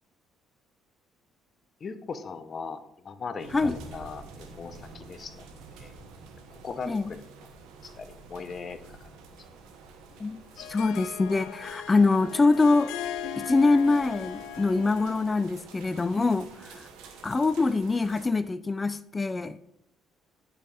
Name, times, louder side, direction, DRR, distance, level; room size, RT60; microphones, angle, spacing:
voice 1, 1.8-4.2 4.5-5.5 5.8-5.9 6.5-7.2 7.8-9.1 10.6-10.7, left 5 dB, 45° left, 11 dB, 0.8 m, -39 dB
sound 1, 3.4-18.3, right 4 dB, 85° right, 1.2 m, -49 dB
Harp, 10.2-15.5, left 9 dB, 80° left, 0.5 m, -39 dB
voice 2, 10.7-12.9 13.4-16.9 17.2-19.6, left 3 dB, 25° left, 14 dB, 0.4 m, -24 dB
11.0 x 5.4 x 3.4 m, 0.77 s
supercardioid pair, 80°, 0 cm